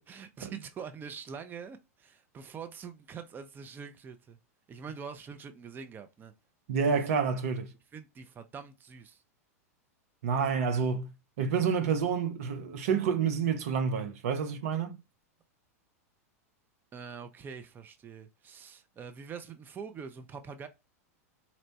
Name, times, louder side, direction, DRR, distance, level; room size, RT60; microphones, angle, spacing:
voice 1, 0.1-4.4 4.7-6.3 7.9-9.2 16.9-20.7, right 6 dB, 25° right, 0.5 m, -44 dB
voice 2, 6.7-7.7 10.2-11.1 11.4-15.0, right 6 dB, 65° right, 0.6 m, -28 dB
4.1 x 2.1 x 2.7 m
hypercardioid pair, 105°, 8 cm